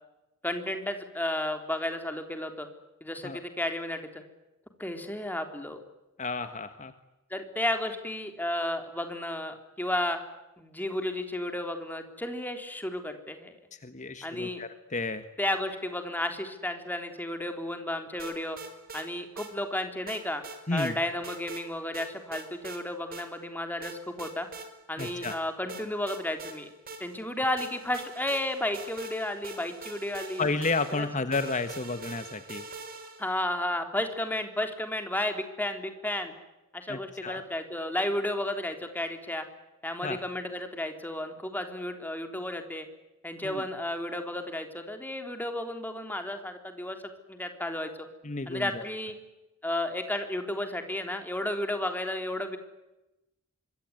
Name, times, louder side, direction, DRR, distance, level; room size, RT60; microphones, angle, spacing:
voice 1, 0.4-2.7 3.0-4.1 4.8-5.8 7.3-10.2 10.6-13.6 14.2-14.6 15.4-18.6 18.9-20.4 20.7-24.5 24.9-26.7 27.0-30.5 31.0-31.1 33.2-36.3 36.7-39.5 39.8-42.9 43.2-47.0 47.3-48.1 48.5-49.1 49.6-52.6, left 1 dB, 10° left, 6 dB, 3.6 m, -33 dB
voice 2, 6.2-6.9 13.7-15.2 20.7-21.0 25.0-25.4 30.4-32.7 36.9-37.4 40.0-40.2 43.4-43.6 48.2-48.9, left 3 dB, 35° left, 9 dB, 1.5 m, -32 dB
sound 1, 18.2-19.1 19.4-19.5 20.1-20.9 21.2-21.6 21.9-22.8 23.1-23.3 23.8-24.7 25.0-25.4 25.7-27.2 27.6-33.3, right 3 dB, 45° right, 5.3 m, -43 dB
25.5 x 23.5 x 9.5 m, 0.98 s
head